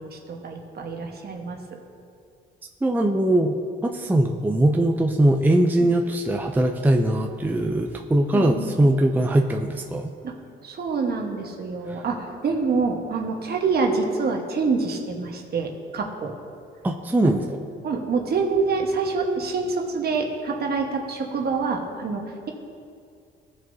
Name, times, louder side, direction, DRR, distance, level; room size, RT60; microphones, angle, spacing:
voice 1, 0.0-1.8 8.3-8.8 10.2-10.3 10.6-16.3 17.2-17.3 17.8-22.5, right 4 dB, 55° right, 2 dB, 1.3 m, -26 dB
voice 2, 2.8-3.6 3.8-10.1 11.9-12.0 16.8-17.4, right 1 dB, 10° right, 3 dB, 0.5 m, -21 dB
15.0 x 6.4 x 2.7 m, 2.4 s
cardioid pair, 90°, 20 cm